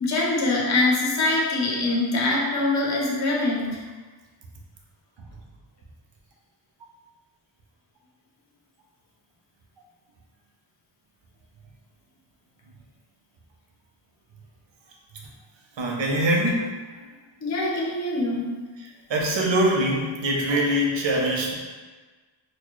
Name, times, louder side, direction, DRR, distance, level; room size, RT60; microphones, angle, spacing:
voice 1, 0.0-3.8 17.4-18.5, left 2 dB, 40° left, -3 dB, 0.6 m, -23 dB
voice 2, 15.8-16.7 17.0-17.1 19.1-21.5, right 1 dB, 75° right, -1 dB, 0.7 m, -23 dB
4.1 x 2.3 x 3.0 m, 1.4 s
wide cardioid pair, 165°, 46 cm